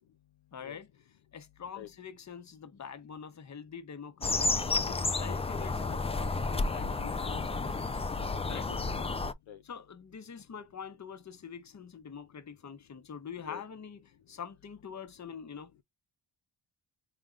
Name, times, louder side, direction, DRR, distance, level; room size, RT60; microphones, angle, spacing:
voice 1, 0.5-0.9 1.3-8.0 8.5-8.7 9.6-15.7, left 7 dB, 35° left, 0.9 m, -45 dB
sound 1, 4.2-9.3, left 3 dB, 15° left, 0.3 m, -31 dB
voice 2, 8.7-9.1 9.5-9.6 13.4-13.6, left 10 dB, 65° left, 0.6 m, -46 dB
3.8 x 3.3 x 2.3 m
cardioid pair, 75°, 50 cm